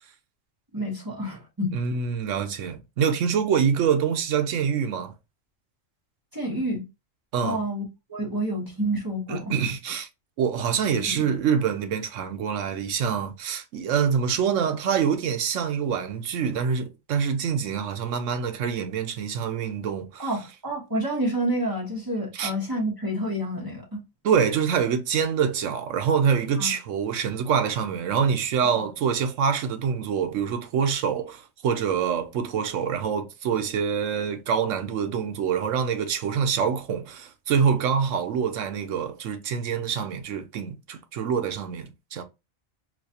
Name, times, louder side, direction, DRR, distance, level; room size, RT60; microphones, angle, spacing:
voice 1, 0.7-1.7 6.3-6.8 7.4-7.8 8.1-9.6 10.9-11.2 20.2-24.0 26.6-26.7 28.6-28.8, right 1 dB, 20° right, 1.0 m, -29 dB
voice 2, 1.7-5.1 7.3-7.6 9.3-10.1 10.4-20.2 22.3-22.5 24.2-42.2, right 7 dB, 75° right, 0.9 m, -25 dB
4.3 x 2.3 x 2.7 m
omnidirectional pair, 1.4 m